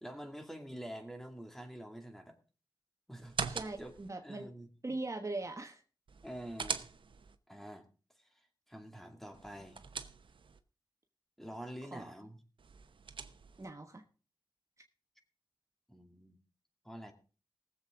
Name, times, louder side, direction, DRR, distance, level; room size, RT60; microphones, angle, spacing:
voice 1, 0.0-2.4 3.1-3.9 4.2-4.7 6.2-6.9 7.5-7.9 8.2-9.8 11.4-12.4 15.9-16.4 16.8-17.1, right 1 dB, 5° left, 5 dB, 2.5 m, -47 dB
sound 1, 3.2-4.1 6.1-7.4 9.3-10.6 12.6-13.7, right 5 dB, 75° right, 0.9 m, -42 dB
voice 2, 3.5-4.5 4.8-5.8 11.9-12.1 13.6-14.0, right 2 dB, 35° right, 5 dB, 1.3 m, -40 dB
19.5 x 7.7 x 3.8 m, 0.36 s
cardioid pair, 60°, 9 cm